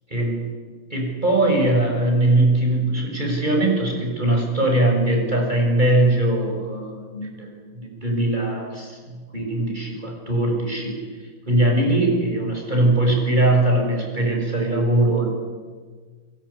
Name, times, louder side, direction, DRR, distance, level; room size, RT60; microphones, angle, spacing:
voice 1, 0.9-11.0 11.5-15.3, right 1 dB, 10° right, 1 dB, 6.7 m, -21 dB
27.5 x 22.5 x 8.7 m, 1.5 s
omnidirectional pair, 5.9 m